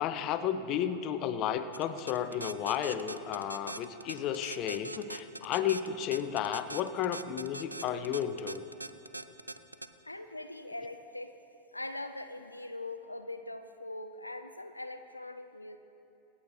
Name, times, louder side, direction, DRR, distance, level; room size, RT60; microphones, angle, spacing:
voice 1, 0.0-8.6, left 9 dB, 35° left, 11 dB, 0.6 m, -33 dB
sound 1, 1.7-9.9, right 2 dB, 85° right, 0.4 m, -41 dB
voice 2, 10.0-11.3 11.7-15.8, left 2 dB, 85° left, 8 dB, 0.5 m, -42 dB
25.0 x 8.5 x 3.1 m, 2.9 s
figure-of-eight pair, 90°, 0 cm